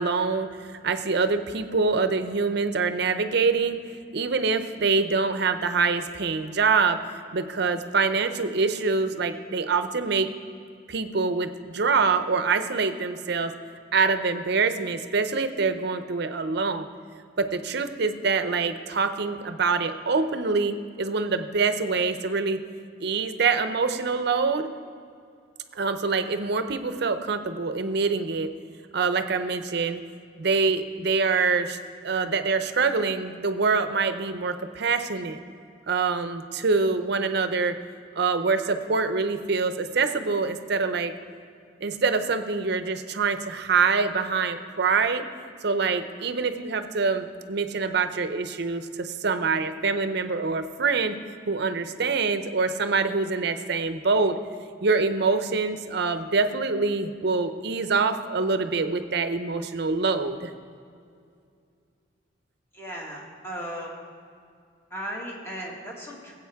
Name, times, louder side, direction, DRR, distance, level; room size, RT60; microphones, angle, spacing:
voice 1, 0.0-3.8 4.1-7.0 7.3-10.3 10.9-13.5 13.9-16.9 17.4-22.6 23.0-24.7 25.7-28.5 28.9-30.0 30.4-31.8 32.0-35.4 35.9-37.7 38.2-41.1 41.8-45.2 45.6-51.2 51.5-54.4 54.8-60.5, right 4 dB, 60° right, 9 dB, 0.6 m, -25 dB
voice 2, 62.7-64.0 64.9-66.3, equal, 15° left, -2 dB, 1.8 m, -36 dB
18.0 x 8.1 x 3.5 m, 2.3 s
head